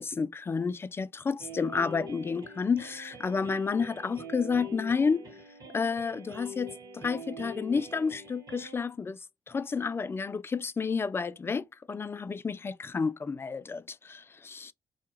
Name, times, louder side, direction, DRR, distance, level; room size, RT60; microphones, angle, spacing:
voice 1, 0.0-5.3 5.7-9.2 9.5-14.7, left 5 dB, 30° left, 0.3 m, -30 dB
sound 1, 1.4-8.8, equal, 50° right, 1.3 m, -44 dB
2.8 x 2.2 x 2.9 m
hypercardioid pair, 50°, 9 cm